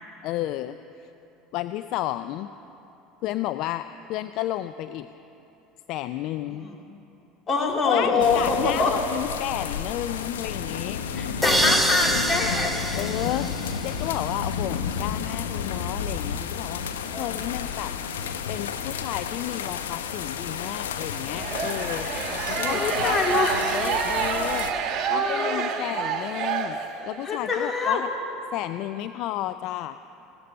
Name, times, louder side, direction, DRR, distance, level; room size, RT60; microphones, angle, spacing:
voice 1, 0.2-1.1 1.5-2.5 3.2-5.1 5.9-6.7 7.8-11.8 13.0-17.9 18.5-22.1 22.6-26.8 27.0-28.1 28.5-30.0, left 14 dB, 60° left, 11 dB, 0.3 m, -32 dB
voice 2, 7.5-8.9 11.1-13.0 17.1-17.6 22.6-23.6 25.1-25.6 27.2-28.0, left 4 dB, 35° left, 1 dB, 2.7 m, -25 dB
sound 1, 8.2-24.7, left 7 dB, 85° left, 0.7 m, -31 dB
sound 2, 11.4-14.3, right 1 dB, 10° right, 1.2 m, -26 dB
sound 3, 21.3-27.3, right 7 dB, 50° right, 1.3 m, -28 dB
15.5 x 12.5 x 6.7 m, 2.9 s
hypercardioid pair, 80°, 0 cm